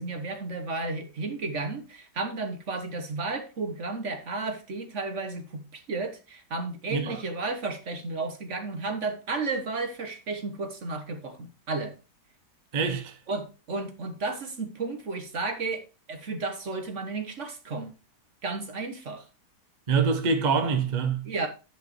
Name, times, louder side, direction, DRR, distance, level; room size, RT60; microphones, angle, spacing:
voice 1, 0.0-11.9 13.3-17.9 18.4-19.3 21.2-21.5, right 3 dB, 50° right, 1.3 m, -33 dB
voice 2, 12.7-13.1 19.9-21.3, right 5 dB, 30° right, 1.0 m, -25 dB
10.5 x 5.4 x 4.4 m
omnidirectional pair, 1.8 m